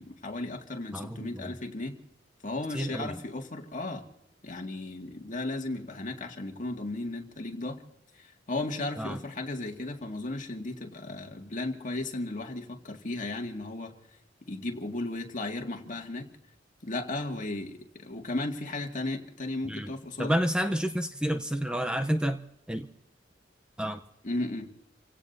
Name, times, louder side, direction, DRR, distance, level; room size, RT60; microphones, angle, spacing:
voice 1, 0.0-2.0 2.4-4.0 4.4-7.8 8.1-13.9 14.5-16.3 16.8-20.4 24.2-24.7, left 2 dB, 45° left, 2 dB, 2.0 m, -35 dB
voice 2, 0.9-1.5 2.7-3.2 9.0-9.2 19.6-19.9 20.2-22.9 23.8-24.0, equal, 5° right, 7 dB, 0.7 m, -30 dB
29.0 x 17.0 x 2.7 m, 0.84 s
head